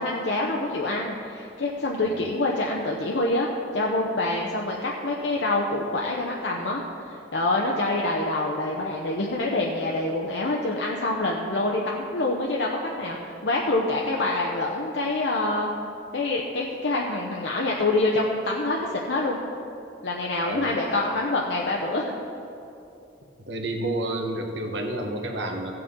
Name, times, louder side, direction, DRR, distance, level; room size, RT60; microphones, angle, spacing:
voice 1, 0.0-3.5 3.7-6.8 7.3-12.7 13.0-15.7 16.1-19.4 20.0-22.1, left 2 dB, 60° left, -1 dB, 0.8 m, -26 dB
voice 2, 20.3-20.7 23.4-25.7, right 1 dB, 65° right, 2 dB, 1.2 m, -30 dB
16.0 x 7.7 x 3.7 m, 2.7 s
head